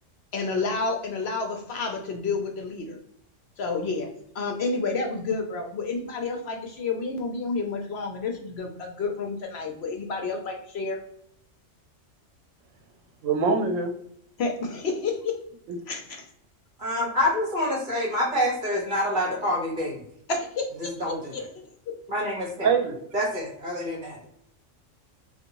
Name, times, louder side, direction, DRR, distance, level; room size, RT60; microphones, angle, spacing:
voice 1, 0.3-3.0 3.6-4.1 4.3-11.0 14.4-15.3 15.9-16.3 20.3-21.4, left 4 dB, 65° left, 3 dB, 0.8 m, -30 dB
voice 2, 13.2-13.9 15.7-15.8 22.6-23.0, right 5 dB, 80° right, 5 dB, 1.0 m, -23 dB
voice 3, 16.8-20.0 20.8-21.4 22.1-22.7 23.1-24.3, left 1 dB, 40° right, -2 dB, 1.2 m, -27 dB
3.4 x 2.5 x 2.9 m, 0.71 s
omnidirectional pair, 1.3 m